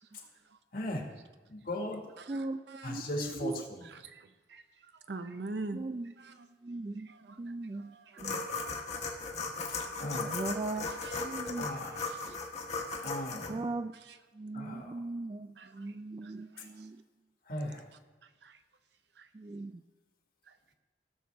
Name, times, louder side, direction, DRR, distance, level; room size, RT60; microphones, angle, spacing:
voice 1, 0.7-1.0 1.5-2.2 2.8-3.8 10.0-10.4 11.6-12.0 13.0-13.6 14.5-14.9 17.5-17.8, left 1 dB, 55° left, 1.8 m, -37 dB
voice 2, 2.3-3.7 5.7-8.4 10.2-10.9 11.1-11.7 12.3-12.5 13.5-13.9 14.3-17.0 19.3-19.8, right 2 dB, 30° right, 0.3 m, -39 dB
voice 3, 4.0-5.8 6.4-6.5 7.1-7.4 7.8-8.2 8.6-8.7 9.8-10.0 10.8-11.2 11.9-12.4 15.6-15.7 16.2-16.7 18.4-18.6 19.2-19.3 20.5-20.6, right 3 dB, 70° right, 0.7 m, -44 dB
sound 1, 8.2-13.5, left 4 dB, 40° left, 1.3 m, -37 dB
17.0 x 6.7 x 3.4 m
head